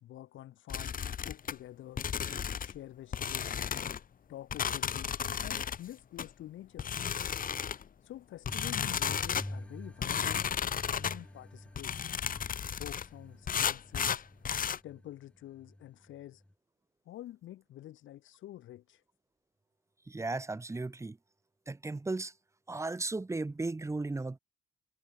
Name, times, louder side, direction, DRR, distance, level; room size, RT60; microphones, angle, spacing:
voice 1, 0.0-2.0 2.6-3.6 4.3-5.1 5.4-6.9 8.0-12.1 12.7-14.2 14.8-16.4 17.0-19.0, left 13 dB, 75° left, 1.4 m, -48 dB
sound 1, 0.7-1.5 2.0-2.8 3.1-4.0 4.5-5.8 6.2-6.3 6.8-7.8 8.5-9.5 10.0-11.2 11.8-13.1 13.5-14.8, left 8 dB, 45° left, 1.1 m, -33 dB
sound 2, 8.5-16.5, left 1 dB, 5° left, 2.5 m, -47 dB
voice 2, 20.1-21.2 21.7-22.3 22.7-24.4, right 3 dB, 15° right, 0.9 m, -35 dB
cardioid pair, 90°, 20 cm